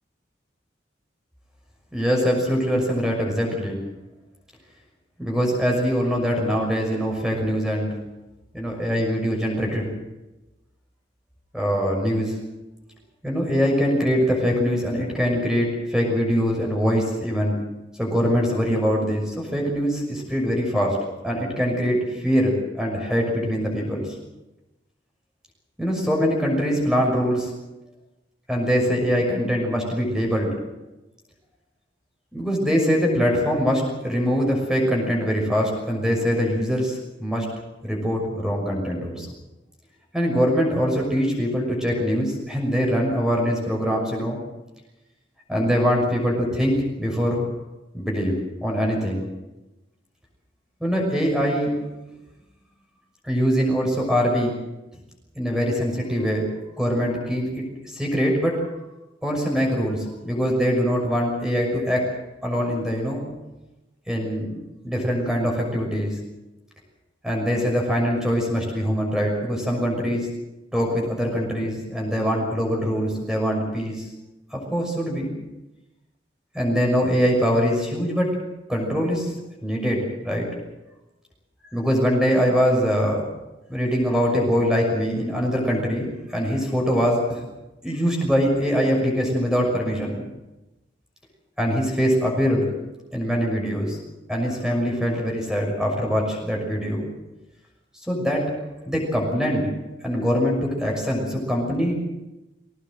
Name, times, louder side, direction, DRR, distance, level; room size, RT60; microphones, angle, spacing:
voice 1, 1.9-3.8 5.2-8.0 8.5-9.9 11.5-12.4 13.2-17.6 18.0-21.0 21.2-24.1 25.8-27.5 28.5-30.5 32.3-37.5 37.8-39.3 40.1-44.4 45.5-47.5 47.9-48.4 48.6-49.2 50.8-51.7 53.2-54.5 55.3-56.5 56.8-58.6 59.2-62.1 62.4-63.2 64.1-64.6 64.8-66.2 67.2-70.3 70.7-74.1 74.5-75.3 76.5-78.4 78.7-79.3 79.6-80.5 81.6-83.2 83.7-87.4 87.8-90.2 91.6-92.7 93.1-94.0 94.3-97.1 98.1-98.4 98.9-99.7 100.0-102.0, equal, 5° right, 0 dB, 6.2 m, -23 dB
22.0 x 18.5 x 7.8 m, 1.0 s
head